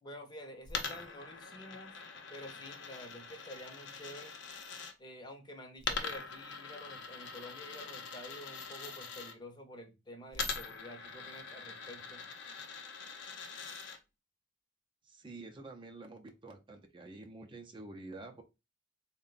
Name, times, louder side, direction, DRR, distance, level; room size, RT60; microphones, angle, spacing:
voice 1, 0.0-2.0 2.3-4.4 5.0-12.3, left 1 dB, 25° left, 0.7 m, -49 dB
Coin (dropping), 0.6-4.9 5.8-9.3 10.3-14.0, left 5 dB, 70° left, 0.7 m, -43 dB
voice 2, 15.0-18.4, right 2 dB, 25° right, 0.5 m, -48 dB
3.9 x 2.2 x 3.8 m
head